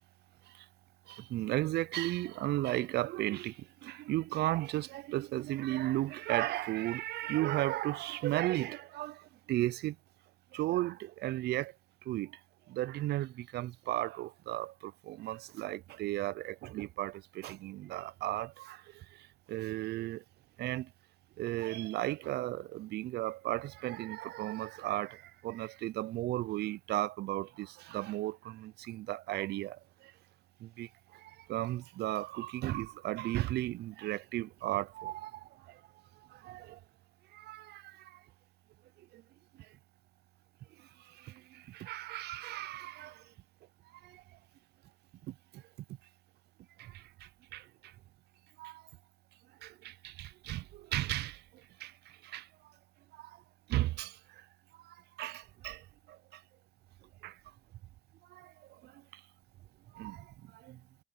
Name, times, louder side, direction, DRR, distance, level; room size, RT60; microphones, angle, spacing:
voice 1, 1.1-10.0 10.5-11.7 12.1-12.4 12.7-20.2 20.6-20.9 21.4-30.1 30.6-35.8 36.3-36.8 37.3-38.2 39.1-39.2 41.1-43.2 44.0-44.2 45.3-45.6 46.8-47.9 48.6-48.8 49.6-51.4 51.8-51.9 52.2-52.5 53.1-53.4 53.7-54.4 54.8-56.4 57.2-57.4 58.3-59.2 59.9-60.8, right 16 dB, 60° right, 0.5 m, -35 dB
supercardioid pair, 85°, 19 cm